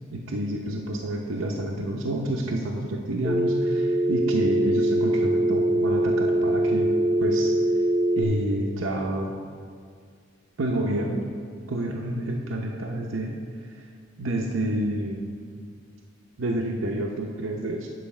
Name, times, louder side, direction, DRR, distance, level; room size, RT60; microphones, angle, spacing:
voice 1, 0.1-7.6 8.2-9.3 10.6-11.3 11.7-13.3 14.2-15.3 16.4-17.9, right 1 dB, 90° right, 1 dB, 0.7 m, -29 dB
Telephone, 3.2-8.2, right 1 dB, 20° right, 0.9 m, -23 dB
9.4 x 6.3 x 4.3 m, 2.1 s
head